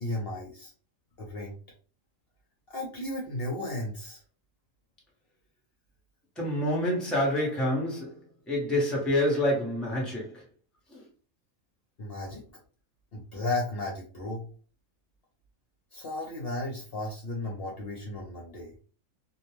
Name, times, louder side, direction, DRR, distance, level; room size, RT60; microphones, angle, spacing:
voice 1, 0.0-0.7 1.2-1.5 2.7-4.2 12.0-12.4 13.1-14.5 15.9-18.7, left 2 dB, 55° left, 0.8 m, -34 dB
voice 2, 6.4-8.2 8.5-10.3 10.9-11.0, left 1 dB, ahead, 0.7 m, -27 dB
2.5 x 2.1 x 3.0 m
omnidirectional pair, 1.4 m